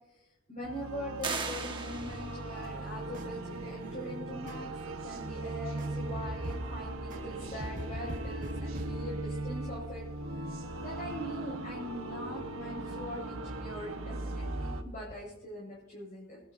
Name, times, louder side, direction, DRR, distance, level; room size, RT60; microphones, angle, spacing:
voice 1, 0.1-10.0 10.4-16.4, equal, 40° left, -5 dB, 5.6 m, -42 dB
sound 1, 0.6-14.8, right 2 dB, 90° right, 1.3 m, -39 dB
sound 2, 1.2-2.6, right 4 dB, 25° right, 1.4 m, -37 dB
sound 3, 2.5-8.9, right 1 dB, 40° right, 1.4 m, -45 dB
26.0 x 12.0 x 2.7 m, 0.93 s
head